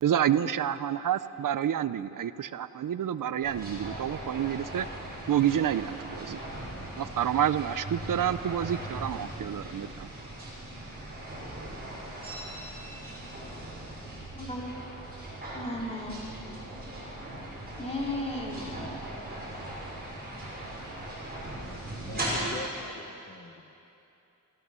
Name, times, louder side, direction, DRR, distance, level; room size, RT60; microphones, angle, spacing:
voice 1, 0.0-4.9 5.3-6.4 7.0-10.1, right 10 dB, 75° right, 14 dB, 0.6 m, -28 dB
sound 1, 3.4-22.4, right 1 dB, 30° right, 6.1 m, -39 dB
voice 2, 14.3-14.7 15.5-16.2 17.8-19.0, left 1 dB, 20° left, -2 dB, 3.0 m, -35 dB
voice 3, 22.1-23.7, left 3 dB, 40° left, 4 dB, 1.1 m, -43 dB
25.0 x 15.5 x 6.9 m, 2.8 s
wide cardioid pair, 180°, 32 cm